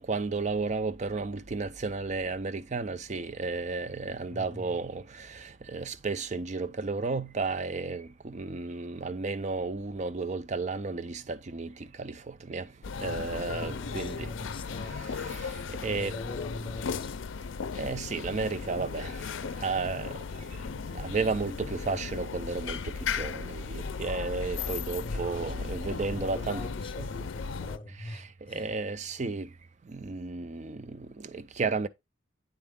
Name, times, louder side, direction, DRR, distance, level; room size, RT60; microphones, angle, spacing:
voice 1, 0.0-12.7 13.0-14.3 15.0-16.2 17.7-20.1 20.9-26.7 27.0-27.1 28.0-29.5 29.9-31.9, right 4 dB, 35° right, 0.4 m, -33 dB
voice 2, 4.3-4.8 12.9-15.3 15.8-17.2 25.0-25.8 26.1-28.7, left 1 dB, 25° left, 0.7 m, -43 dB
sound 1, 12.8-27.8, left 5 dB, 85° left, 0.5 m, -36 dB
9.0 x 4.3 x 3.6 m
head